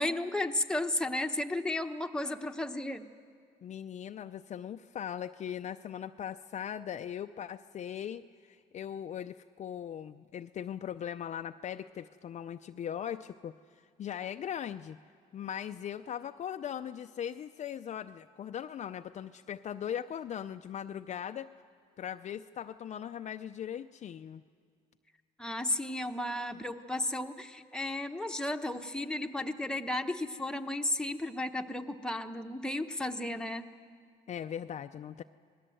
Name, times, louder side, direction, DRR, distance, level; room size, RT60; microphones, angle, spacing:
voice 1, 0.0-3.0 25.4-33.6, left 1 dB, 5° left, 5 dB, 1.1 m, -34 dB
voice 2, 3.6-13.6 14.0-15.0 15.3-21.5 22.0-24.4 34.3-35.2, left 9 dB, 45° left, 8 dB, 0.5 m, -39 dB
27.0 x 20.0 x 7.8 m, 2.1 s
cardioid pair, 110°, 17 cm